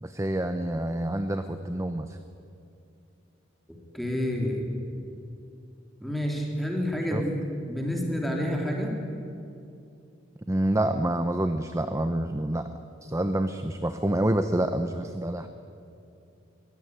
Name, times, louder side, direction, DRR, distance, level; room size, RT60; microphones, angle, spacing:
voice 1, 0.0-2.2 7.1-7.2 10.5-12.7 13.0-15.5, right 1 dB, 15° right, 9 dB, 0.8 m, -27 dB
voice 2, 3.9-4.7 6.0-7.3 7.7-8.9, equal, ahead, -1 dB, 3.8 m, -28 dB
22.5 x 16.0 x 9.9 m, 2.6 s
head